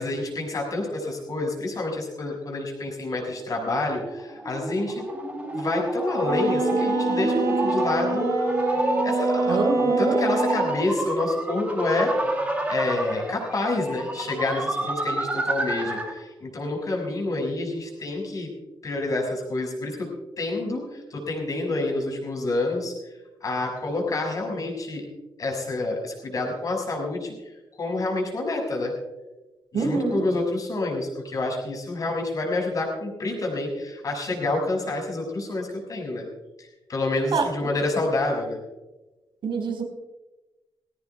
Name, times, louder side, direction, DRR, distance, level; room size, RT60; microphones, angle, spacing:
voice 1, 0.0-5.0 5.5-8.3 9.0-12.1 12.7-18.5 18.8-20.1 20.4-22.9 23.4-25.1 25.4-27.3 27.8-28.9 29.7-36.3 36.9-38.6, left 2 dB, 40° left, 1 dB, 6.0 m, -28 dB
sound 1, 3.5-16.2, right 1 dB, 15° right, 3.0 m, -29 dB
Wind instrument woodwind instrument, 6.2-10.8, right 2 dB, 35° right, 4.7 m, -25 dB
voice 2, 9.4-10.2 29.7-30.2 37.3-37.5 39.4-39.8, right 4 dB, 75° right, 3 dB, 4.5 m, -25 dB
21.0 x 17.0 x 2.4 m, 1.1 s
wide cardioid pair, 140°, 9 cm